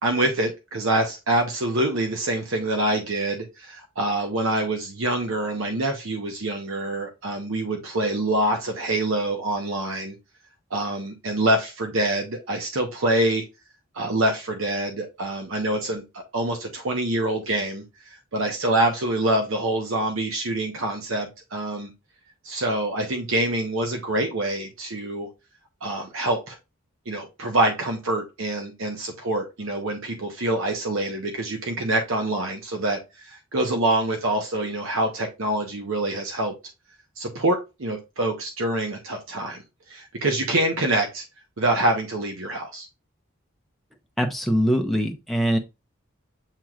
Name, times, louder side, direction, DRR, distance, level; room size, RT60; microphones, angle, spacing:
voice 1, 0.0-10.2 10.7-13.4 13.9-21.9 22.4-25.3 25.8-26.6 27.1-36.5 37.2-39.6 39.9-41.2 41.6-42.9, right 1 dB, 65° right, 0.7 m, -25 dB
voice 2, 44.2-45.6, equal, ahead, 0.6 m, -22 dB
7.4 x 3.0 x 2.4 m
head